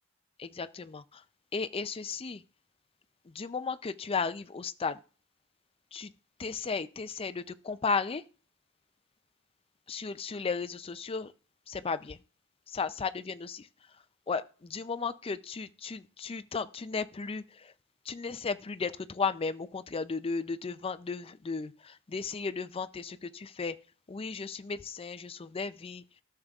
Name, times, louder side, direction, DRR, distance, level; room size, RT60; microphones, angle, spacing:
voice 1, 0.4-1.2 1.5-2.4 3.3-5.0 5.9-6.1 6.4-8.2 9.9-11.3 11.7-12.2 12.7-13.7 14.3-17.7 18.1-23.7 24.1-26.0, left 4 dB, 25° left, 0.5 m, -35 dB
13.0 x 6.7 x 2.4 m
head